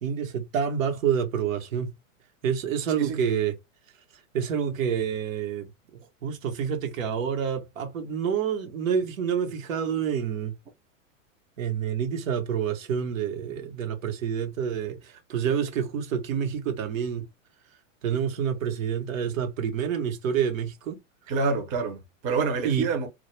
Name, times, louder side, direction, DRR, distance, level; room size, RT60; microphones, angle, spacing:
voice 1, 0.0-1.9 2.4-3.6 4.3-10.5 11.6-17.2 18.0-21.0 22.6-22.9, right 8 dB, 85° right, 0.9 m, -28 dB
voice 2, 21.3-23.1, right 4 dB, 20° right, 0.5 m, -27 dB
2.2 x 2.1 x 3.0 m
supercardioid pair, 145°, 39 cm